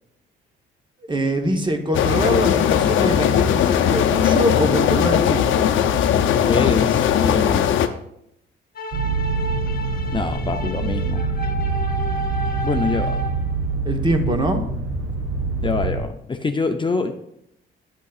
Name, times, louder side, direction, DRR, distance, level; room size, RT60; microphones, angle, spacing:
voice 1, 1.1-5.7 13.8-14.6, right 1 dB, 25° right, 5 dB, 1.0 m, -23 dB
sound 1, 1.9-7.9, left 9 dB, 75° left, 0.6 m, -18 dB
voice 2, 6.4-7.7 10.1-11.2 12.6-13.2 15.6-17.1, left 4 dB, 25° left, 6 dB, 0.5 m, -24 dB
sound 2, 8.8-13.6, equal, 50° left, 1.0 m, -32 dB
sound 3, 8.9-16.0, right 4 dB, 85° right, 1.1 m, -25 dB
8.8 x 8.2 x 2.4 m, 0.78 s
cardioid pair, 90°, 20 cm